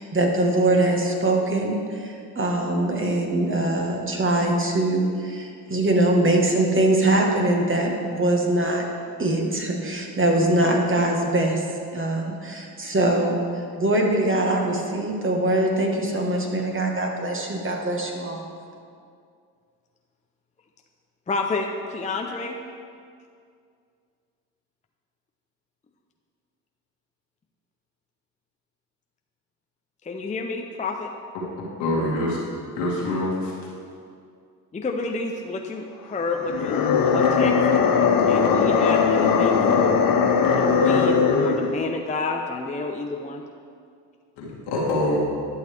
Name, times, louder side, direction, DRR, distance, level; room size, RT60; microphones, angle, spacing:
voice 1, 0.0-8.9 9.2-13.4 13.8-18.4, right 1 dB, 30° right, 1 dB, 1.4 m, -22 dB
voice 2, 21.3-22.6 30.0-31.1 34.7-37.7 38.3-40.0 40.6-43.4, left 3 dB, 15° left, 2 dB, 0.6 m, -29 dB
voice 3, 31.8-32.4 32.7-33.6 44.4-45.2, left 1 dB, 85° left, -5 dB, 2.0 m, -25 dB
sound 1, 36.4-41.8, left 5 dB, 50° left, 0.8 m, -19 dB
11.0 x 6.4 x 3.4 m, 2.3 s
supercardioid pair, 65°, 43 cm